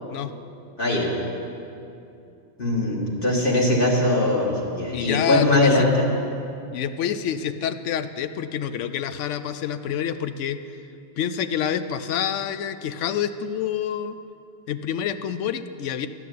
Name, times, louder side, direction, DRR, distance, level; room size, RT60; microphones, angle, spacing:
voice 1, 2.6-6.0, left 1 dB, 45° left, -4 dB, 2.1 m, -21 dB
voice 2, 4.9-5.9 6.7-10.6 11.2-14.2 14.7-16.1, left 9 dB, 85° left, 11 dB, 0.9 m, -27 dB
12.5 x 6.1 x 9.3 m, 2.7 s
omnidirectional pair, 1.2 m